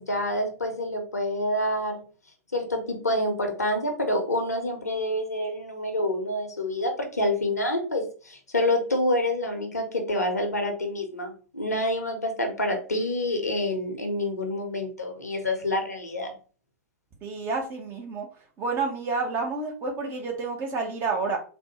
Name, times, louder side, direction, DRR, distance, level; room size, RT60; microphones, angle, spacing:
voice 1, 0.0-2.0 2.5-16.3, left 1 dB, 80° left, 4 dB, 0.8 m, -27 dB
voice 2, 17.2-18.3 18.6-21.4, right 4 dB, 25° right, 2 dB, 0.8 m, -29 dB
3.4 x 2.2 x 2.9 m, 0.38 s
figure-of-eight pair, 100°, 9 cm